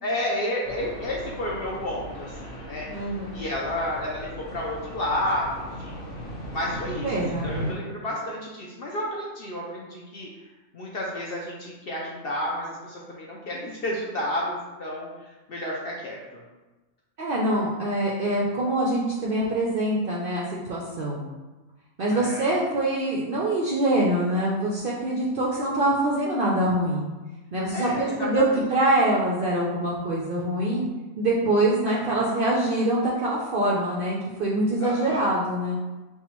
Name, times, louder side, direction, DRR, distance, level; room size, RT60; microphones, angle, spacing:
voice 1, 0.0-3.1 3.3-6.0 6.5-10.3 10.7-16.4 22.1-22.5 27.7-28.6 31.9-32.4 34.8-35.3, left 1 dB, 60° left, -3 dB, 0.6 m, -31 dB
sound 1, 0.6-7.7, equal, 75° left, 1.5 m, -37 dB
voice 2, 2.9-3.3 7.0-7.5 17.2-21.2 22.0-27.1 27.5-28.4 28.7-30.9 31.2-35.8, right 1 dB, 60° right, -4 dB, 0.5 m, -24 dB
5.5 x 2.3 x 2.9 m, 1.2 s
omnidirectional pair, 1.5 m